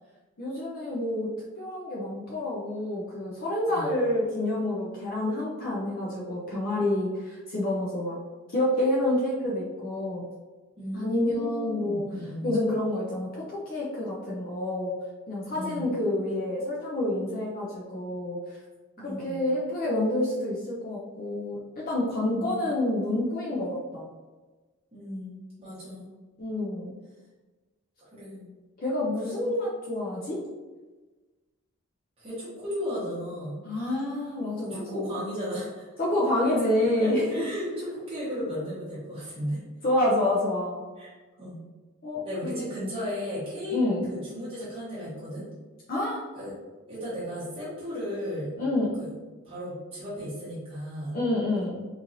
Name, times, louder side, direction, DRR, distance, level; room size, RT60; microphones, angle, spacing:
voice 1, 0.4-1.3 1.6-8.2 8.5-10.2 10.9-12.1 12.4-14.9 15.3-18.4 19.0-24.1 26.4-27.0 28.8-30.4 33.6-35.0 36.0-37.5 38.3-38.4 39.8-40.8 42.0-42.7 43.7-44.0 45.9-46.2 48.6-48.9 51.1-51.8, left 1 dB, 40° left, -5 dB, 0.5 m, -28 dB
voice 2, 10.8-12.5 15.5-15.9 19.0-19.4 22.2-22.6 24.9-26.1 28.1-28.5 29.2-29.5 32.2-33.5 34.6-35.9 36.8-39.6 41.0-41.1 41.4-41.6 42.2-43.8 44.1-45.4 46.3-46.5 46.9-48.5 49.0-49.1 49.4-51.1, equal, 25° right, -11 dB, 1.0 m, -35 dB
3.0 x 2.6 x 2.6 m, 1.3 s
head